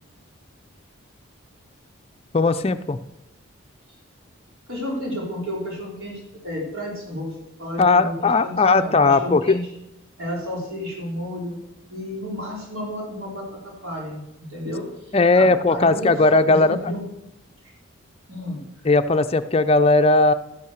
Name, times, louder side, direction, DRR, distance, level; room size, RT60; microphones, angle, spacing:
voice 1, 2.3-3.0 7.8-9.6 15.1-16.8 18.9-20.3, left 3 dB, 30° left, 9 dB, 0.5 m, -17 dB
voice 2, 4.7-9.6 10.2-11.6 11.9-13.4 13.8-14.2 14.5-17.0 17.6-17.7 18.3-18.6, left 1 dB, 75° right, -3 dB, 4.1 m, -32 dB
13.0 x 8.6 x 6.6 m, 0.88 s
head